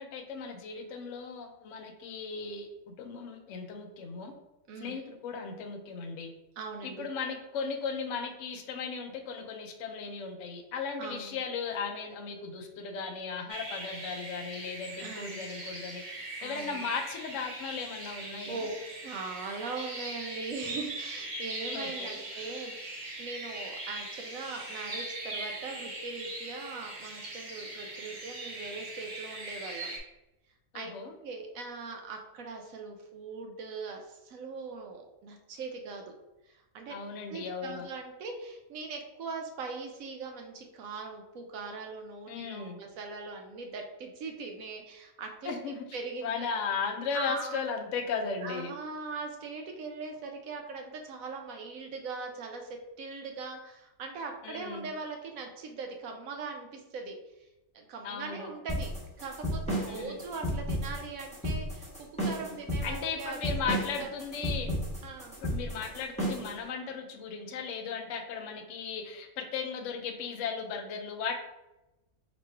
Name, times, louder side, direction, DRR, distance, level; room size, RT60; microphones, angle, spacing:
voice 1, 0.0-4.3 4.8-6.3 6.8-16.0 16.4-18.6 21.7-22.2 30.7-31.1 36.9-37.9 42.3-42.8 45.4-45.9 46.2-48.7 54.4-54.9 58.0-58.5 59.9-60.2 62.8-64.8 65.4-71.4, left 5 dB, 65° left, 5 dB, 0.8 m, -36 dB
voice 2, 6.6-7.1 11.0-11.4 15.0-15.4 16.4-16.9 18.0-18.7 19.0-29.9 30.7-30.9 31.2-36.0 36.4-37.0 37.3-45.5 45.9-46.5 47.1-47.6 48.4-57.5 57.7-58.9 59.2-64.1 65.0-65.4, right 4 dB, 70° right, 3 dB, 1.0 m, -40 dB
sound 1, 13.5-30.0, right 2 dB, 40° right, 0.7 m, -41 dB
sound 2, 58.7-66.6, equal, 5° left, 1.1 m, -33 dB
3.0 x 3.0 x 4.5 m, 0.97 s
omnidirectional pair, 1.6 m